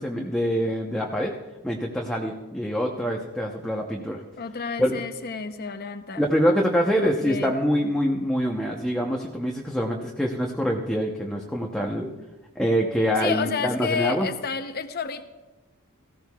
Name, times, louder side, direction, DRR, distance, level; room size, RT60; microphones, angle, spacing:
voice 1, 0.0-1.4 1.6-4.2 4.8-5.0 6.2-12.1 12.6-14.3, equal, 5° left, -1 dB, 0.8 m, -25 dB
voice 2, 4.4-6.2 7.0-7.5 13.2-15.2, left 5 dB, 45° left, 9 dB, 0.8 m, -30 dB
18.0 x 15.0 x 2.4 m, 1.1 s
head